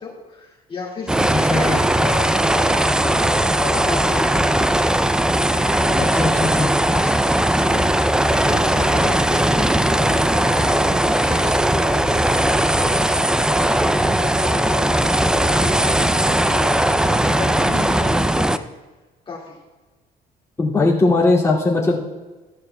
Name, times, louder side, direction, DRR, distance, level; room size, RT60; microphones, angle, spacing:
voice 1, 0.0-4.8 5.5-6.5 6.8-7.1 7.4-10.9 11.2-17.0 17.4-18.7 19.3-19.6, left 4 dB, 30° left, -3 dB, 2.1 m, -33 dB
sound 1, 1.1-18.6, right 1 dB, 5° right, 0.4 m, -18 dB
voice 2, 1.3-1.8 6.0-6.3 6.6-6.7 20.6-22.0, left 3 dB, 15° left, -5 dB, 2.3 m, -19 dB
15.0 x 11.0 x 2.2 m, 1.2 s
cardioid pair, 110°, 17 cm